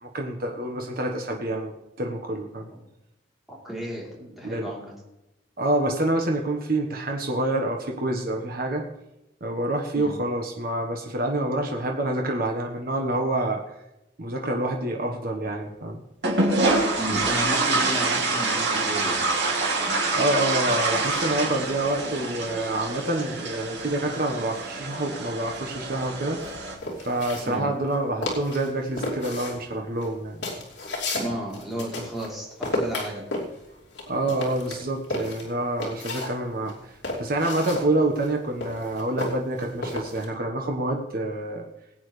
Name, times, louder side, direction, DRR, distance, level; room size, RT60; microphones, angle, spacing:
voice 1, 0.0-2.7 4.2-4.7 5.6-8.8 9.4-13.6 14.2-16.0 20.1-26.4 27.0-30.4 34.1-41.7, right 1 dB, 55° right, 2 dB, 1.3 m, -27 dB
voice 2, 3.5-4.9 9.9-10.1 17.0-19.2 27.5-27.7 31.1-33.3, equal, ahead, -5 dB, 3.5 m, -33 dB
sound 1, 16.2-26.8, right 3 dB, 70° right, 2.4 m, -26 dB
sound 2, 26.4-28.0 28.2-28.7 29.0-32.3 32.6-36.3 36.7-40.3, left 2 dB, 65° left, 2.9 m, -32 dB
20.0 x 8.9 x 3.3 m, 0.91 s
head